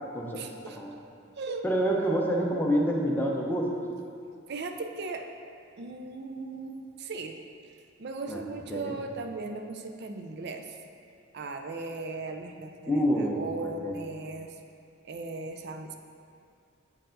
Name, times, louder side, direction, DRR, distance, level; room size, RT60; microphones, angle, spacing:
voice 1, 0.3-0.8 1.4-1.7 4.5-5.3 5.8-7.7 8.0-10.8 11.3-14.6 15.0-16.0, right 3 dB, 55° right, 5 dB, 0.5 m, -38 dB
voice 2, 1.6-3.7 8.3-8.4 8.7-8.9 12.9-14.0, equal, 10° left, -2 dB, 0.6 m, -27 dB
7.4 x 4.6 x 3.8 m, 2.4 s
head